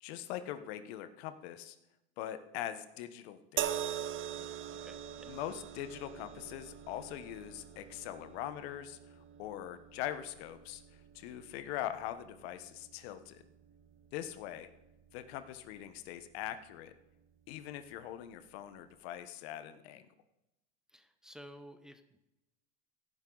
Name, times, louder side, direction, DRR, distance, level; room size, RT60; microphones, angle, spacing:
voice 1, 0.0-1.8 2.2-3.9 5.2-9.1 9.4-10.8 11.1-13.4 14.1-14.7 15.1-16.9 17.5-20.0, left 12 dB, 75° left, 11 dB, 1.2 m, -42 dB
sound 1, 3.6-16.9 17.8-18.0, right 10 dB, 40° right, 0.8 m, -44 dB
voice 2, 4.4-5.4 20.9-22.2, equal, ahead, 8 dB, 1.0 m, -54 dB
16.5 x 10.0 x 4.0 m, 0.93 s
supercardioid pair, 110°, 32 cm